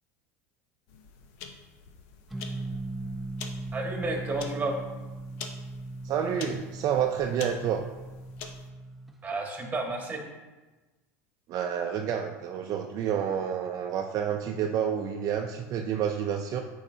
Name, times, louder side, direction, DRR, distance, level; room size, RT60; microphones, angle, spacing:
sound 1, 0.9-8.7, left 5 dB, 70° left, 0.8 m, -46 dB
sound 2, 2.3-9.2, right 2 dB, ahead, 0.7 m, -39 dB
voice 1, 3.7-4.7 9.2-10.2, right 2 dB, 20° right, 1 dB, 1.6 m, -31 dB
voice 2, 6.0-7.8 11.5-16.6, right 8 dB, 45° right, 3 dB, 0.5 m, -29 dB
8.3 x 4.7 x 2.7 m, 1.2 s
hypercardioid pair, 95°, 8 cm